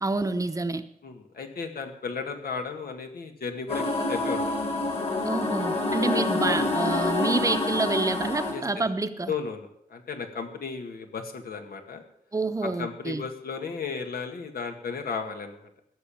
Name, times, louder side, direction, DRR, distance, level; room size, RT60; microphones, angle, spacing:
voice 1, 0.0-0.8 5.2-9.3 12.3-13.2, right 3 dB, 20° right, 9 dB, 0.8 m, -28 dB
voice 2, 1.0-4.6 6.4-6.7 8.5-8.8 9.3-12.0 12.6-15.7, left 5 dB, 85° left, 5 dB, 2.1 m, -35 dB
sound 1, 3.7-8.5, left 2 dB, 40° left, 3.4 m, -27 dB
16.5 x 7.1 x 8.6 m, 0.76 s
wide cardioid pair, 145°, 15 cm